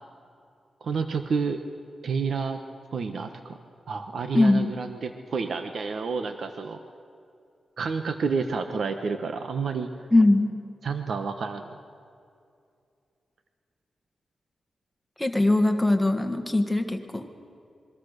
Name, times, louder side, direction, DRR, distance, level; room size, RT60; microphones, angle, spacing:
voice 1, 0.8-1.6 2.0-2.6 2.9-3.6 3.9-6.8 7.8-9.9 10.8-11.7, right 5 dB, 65° right, 7 dB, 1.2 m, -29 dB
voice 2, 4.3-4.7 10.1-10.5 15.2-17.3, left 2 dB, 5° left, 5 dB, 1.6 m, -21 dB
27.0 x 23.0 x 6.7 m, 2.4 s
wide cardioid pair, 150°, 0 cm